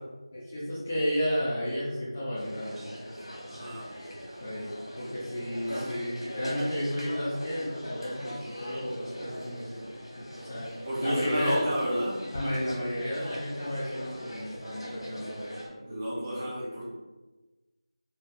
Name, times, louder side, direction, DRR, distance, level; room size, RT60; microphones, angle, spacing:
voice 1, 0.3-9.8 10.2-11.6 12.3-16.5, equal, 15° left, -9 dB, 0.4 m, -33 dB
sound 1, 2.4-15.7, equal, 80° left, 1.3 m, -42 dB
voice 2, 3.5-3.8 5.7-6.0 10.8-12.2 15.8-16.8, equal, 20° right, -9 dB, 0.8 m, -31 dB
4.3 x 2.2 x 2.4 m, 1.2 s
figure-of-eight pair, 175°, 3 cm